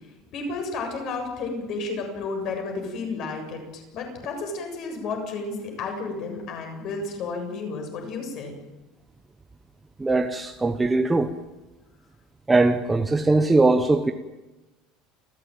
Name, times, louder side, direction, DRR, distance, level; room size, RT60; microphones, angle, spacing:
voice 1, 0.3-8.5, left 3 dB, 40° left, 7.4 m, -32 dB
voice 2, 10.0-11.3 12.5-14.1, right 3 dB, 10° right, 1.0 m, -20 dB
29.5 x 15.5 x 9.2 m
cardioid pair, 170°, 0 cm